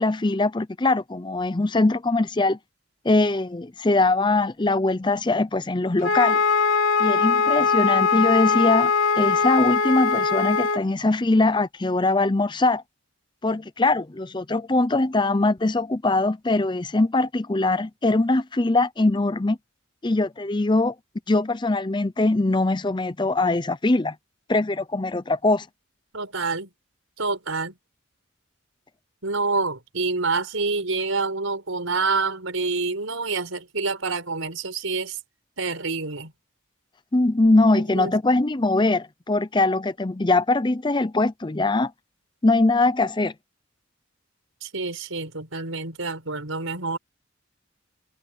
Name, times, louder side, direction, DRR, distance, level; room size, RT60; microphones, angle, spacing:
voice 1, 0.0-2.6 3.0-6.4 7.0-12.8 13.4-19.6 20.0-20.9 21.3-24.2 24.5-25.7 37.1-41.9 42.4-43.3, left 2 dB, 20° left, 0.6 m, -22 dB
Wind instrument woodwind instrument, 6.0-10.8, left 5 dB, 80° left, 3.2 m, -21 dB
voice 2, 26.1-26.7 27.2-27.7 29.2-35.2 35.6-36.3 37.9-38.1 44.6-47.0, right 3 dB, 90° right, 5.4 m, -27 dB
head